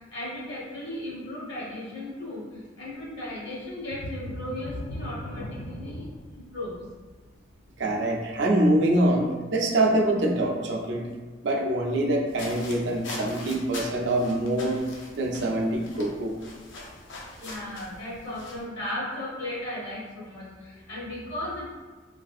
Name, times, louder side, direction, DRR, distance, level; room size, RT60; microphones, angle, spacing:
voice 1, 0.0-6.1 6.3-6.8 17.4-21.7, left 1 dB, 70° left, -5 dB, 1.1 m, -36 dB
sound 1, 3.8-9.3 9.7-9.9 10.4-10.5, equal, 50° left, 0.3 m, -39 dB
voice 2, 7.8-11.1 11.4-14.8 15.2-16.3, right 1 dB, 75° right, 0 dB, 0.5 m, -24 dB
sound 2, 12.3-18.6, left 2 dB, 90° left, 0.6 m, -42 dB
3.3 x 2.6 x 2.4 m, 1.3 s
head